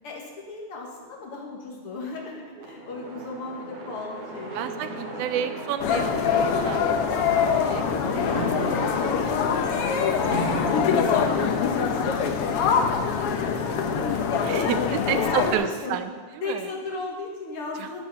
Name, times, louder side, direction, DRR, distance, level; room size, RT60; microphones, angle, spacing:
voice 1, 0.0-5.4 7.7-16.0 16.4-18.1, left 3 dB, 55° left, -2 dB, 2.2 m, -38 dB
sound 1, 2.5-14.7, right 4 dB, 60° right, 1.7 m, -44 dB
sound 2, 2.6-7.0 7.6-11.4, equal, 30° left, 3.1 m, -37 dB
voice 2, 4.5-7.9 14.4-16.7 17.8-17.9, right 9 dB, 85° right, 10 dB, 2.1 m, -31 dB
sound 3, 5.8-15.5, left 6 dB, 70° left, 1.4 m, -24 dB
11.5 x 8.5 x 5.4 m, 1.5 s
omnidirectional pair, 3.4 m